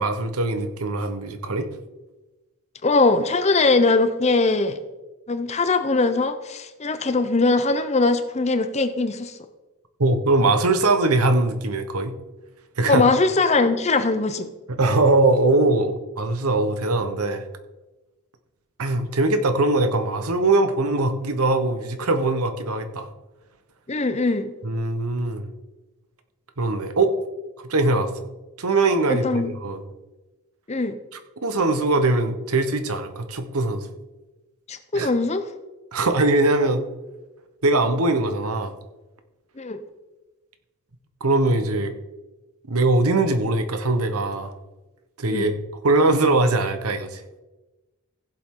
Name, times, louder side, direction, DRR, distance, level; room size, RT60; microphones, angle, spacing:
voice 1, 0.0-1.7 10.0-12.1 12.8-13.1 14.7-17.4 18.8-23.1 24.6-25.4 26.6-27.1 27.7-28.1 28.6-29.8 31.4-33.9 34.9-35.1 35.9-36.8 37.6-38.7 41.2-41.9 42.7-44.5 45.2-45.5 45.8-47.4, right 2 dB, 80° right, 8 dB, 1.1 m, -21 dB
voice 2, 2.8-4.8 5.3-9.4 12.9-14.5 23.9-24.5 29.1-29.5 30.7-31.0 34.7-35.4 39.6-39.8 45.3-45.5, left 3 dB, 30° left, 10 dB, 0.7 m, -21 dB
16.0 x 7.5 x 3.8 m, 1.1 s
head